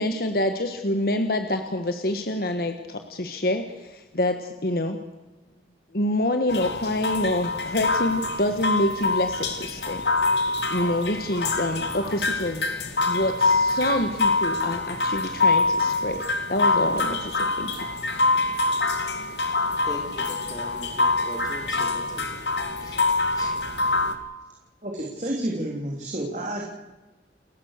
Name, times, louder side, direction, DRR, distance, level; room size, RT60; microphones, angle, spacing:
voice 1, 0.0-5.0 5.9-10.0 10.3-10.4 10.7-12.6 13.1-16.2 16.5-17.7, left 1 dB, 55° left, 1.4 m, -27 dB
sound 1, 6.5-24.1, left 3 dB, 75° left, 2.3 m, -25 dB
voice 2, 19.8-22.4 22.8-23.0 23.3-23.6, equal, 20° left, 4.4 m, -40 dB
voice 3, 24.8-26.7, right 1 dB, 40° right, 3.2 m, -30 dB
30.0 x 15.0 x 6.6 m
head